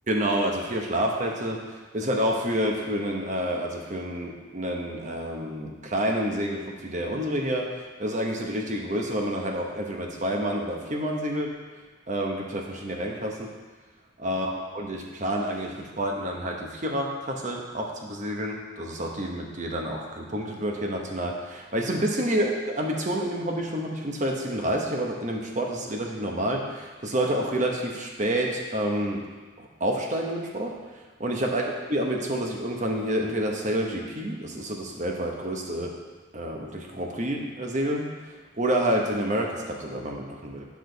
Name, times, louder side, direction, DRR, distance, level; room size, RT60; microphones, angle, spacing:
voice 1, 0.1-11.5 12.1-13.5 14.2-29.2 29.6-31.6 31.9-35.9 36.3-40.7, right 1 dB, 40° right, 0 dB, 1.0 m, -29 dB
9.9 x 4.9 x 4.0 m, 1.4 s
head